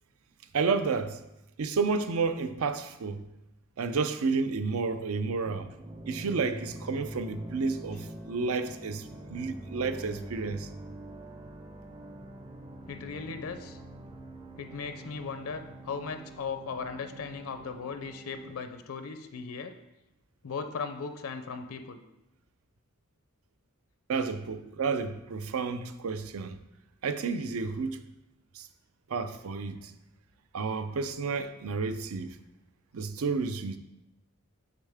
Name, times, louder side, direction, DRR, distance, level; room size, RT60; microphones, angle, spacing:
voice 1, 0.5-1.2 1.6-3.2 3.8-5.7 6.1-10.7 24.1-26.6 27.0-28.0 28.5-28.7 29.1-29.9 30.5-32.4 32.9-33.8, right 4 dB, 75° right, 0.5 m, -31 dB
sound 1, 5.4-18.5, right 1 dB, 20° right, 0.5 m, -45 dB
voice 2, 12.9-13.8 14.6-19.7 20.4-22.0, left 5 dB, 70° left, 0.5 m, -37 dB
6.7 x 6.4 x 3.5 m
head